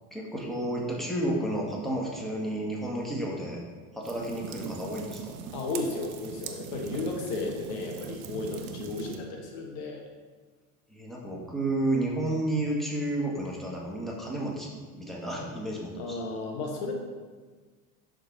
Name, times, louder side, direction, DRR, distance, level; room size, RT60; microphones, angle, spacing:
voice 1, 0.1-3.6 3.9-5.3 10.9-16.2, right 1 dB, ahead, -3 dB, 1.9 m, -31 dB
sound 1, 4.0-9.2, right 7 dB, 70° right, 1.0 m, -41 dB
voice 2, 5.5-10.0 16.0-16.9, left 3 dB, 65° left, 2 dB, 1.3 m, -34 dB
11.0 x 3.9 x 4.0 m, 1.4 s
hypercardioid pair, 75°, 45 cm